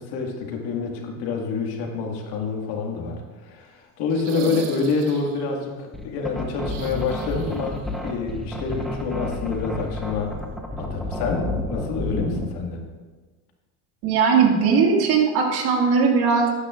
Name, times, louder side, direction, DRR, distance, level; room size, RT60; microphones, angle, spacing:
voice 1, 0.0-10.3 10.8-12.8, left 4 dB, 60° left, 1 dB, 1.9 m, -27 dB
sound 1, 4.1-5.5 6.6-7.8 8.1-8.2 9.8-9.9, right 6 dB, 75° right, 1.3 m, -37 dB
sound 2, 5.9-12.6, left 2 dB, ahead, 0.8 m, -30 dB
voice 2, 14.0-16.5, right 5 dB, 55° right, 0 dB, 2.1 m, -19 dB
13.0 x 9.8 x 2.5 m, 1.3 s
supercardioid pair, 130°, 45 cm